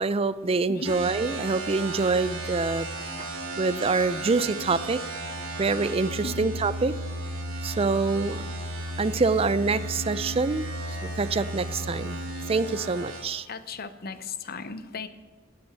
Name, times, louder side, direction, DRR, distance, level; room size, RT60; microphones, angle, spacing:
voice 1, 0.0-2.9 3.2-3.3 3.6-5.0 5.6-6.9 7.6-8.5 9.0-10.7 11.0-12.2 12.5-13.5, right 4 dB, 30° right, 15 dB, 0.4 m, -25 dB
voice 2, 0.7-1.0 6.2-6.5 8.5-8.6 13.5-15.1, left 4 dB, 50° left, 12 dB, 0.8 m, -36 dB
sound 1, 0.8-13.2, right 1 dB, 85° right, 3.7 m, -34 dB
Wind instrument woodwind instrument, 8.8-12.8, right 2 dB, 5° left, 1.6 m, -49 dB
17.0 x 6.2 x 7.9 m, 1.4 s
head